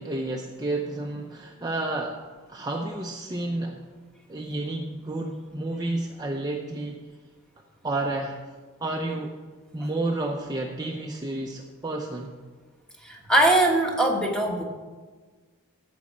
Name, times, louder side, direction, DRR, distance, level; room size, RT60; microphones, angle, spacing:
voice 1, 0.0-2.2 2.5-3.8 4.3-7.0 7.8-8.4 8.8-9.3 9.7-12.3, right 2 dB, 20° right, 1 dB, 0.6 m, -30 dB
voice 2, 13.0-14.6, right 1 dB, 5° left, 1 dB, 1.3 m, -21 dB
13.5 x 5.2 x 7.3 m, 1.4 s
head